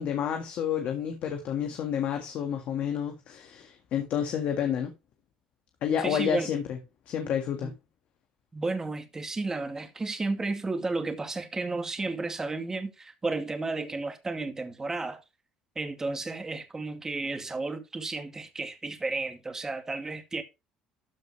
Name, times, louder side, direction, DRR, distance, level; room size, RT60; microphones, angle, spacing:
voice 1, 0.0-4.9 5.8-6.8 7.1-7.7, left 8 dB, 60° left, 1.7 m, -30 dB
voice 2, 6.0-6.5 7.6-7.7 8.5-15.2 15.8-20.4, right 3 dB, 20° right, 2.3 m, -32 dB
13.5 x 5.3 x 3.2 m
supercardioid pair, 95°, 3 cm